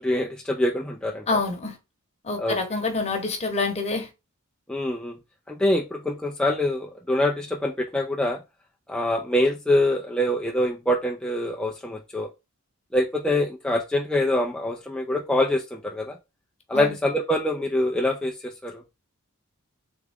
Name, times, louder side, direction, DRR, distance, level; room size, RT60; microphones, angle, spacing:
voice 1, 0.0-1.2 2.4-2.6 4.7-5.2 5.5-8.4 8.9-12.3 12.9-16.2 16.7-18.8, left 1 dB, 5° left, 0.4 m, -25 dB
voice 2, 1.3-1.8 2.2-4.1 16.7-16.9, left 3 dB, 30° left, 0.9 m, -26 dB
3.5 x 3.4 x 3.4 m
head